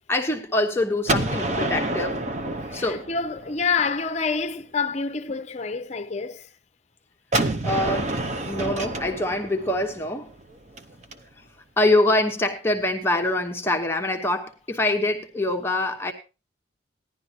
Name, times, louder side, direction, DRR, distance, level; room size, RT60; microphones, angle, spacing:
voice 1, 0.1-2.2 2.7-3.1 7.6-10.3 11.8-16.1, left 1 dB, 15° left, 0.9 m, -24 dB
Gunshot gunfire, 1.1-3.9 7.3-11.1, right 2 dB, 40° right, 0.8 m, -28 dB
voice 2, 2.7-6.5, left 5 dB, 35° left, 0.7 m, -27 dB
16.0 x 11.0 x 2.8 m
head